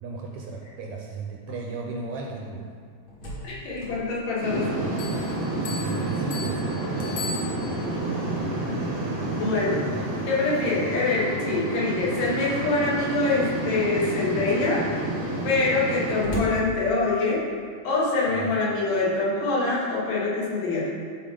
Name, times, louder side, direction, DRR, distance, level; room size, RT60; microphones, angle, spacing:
voice 1, 0.0-2.6 5.7-7.0 9.9-10.0 18.3-18.6, right 4 dB, 75° right, -1 dB, 1.7 m, -36 dB
Slam, 2.8-5.6 5.9-6.0 6.5-12.1 13.0-13.5 14.1-14.2 14.4-17.5, equal, 45° left, 2.2 m, -41 dB
voice 2, 3.4-4.7 9.2-9.9 10.2-14.8 15.4-17.4 17.8-20.9, left 3 dB, 80° left, -6 dB, 3.2 m, -25 dB
sound 1, 4.4-16.2, right 2 dB, 50° right, 0.6 m, -29 dB
sound 2, 5.0-8.0, left 4 dB, 65° left, 1.7 m, -38 dB
12.0 x 4.4 x 3.7 m, 2.1 s
omnidirectional pair, 3.8 m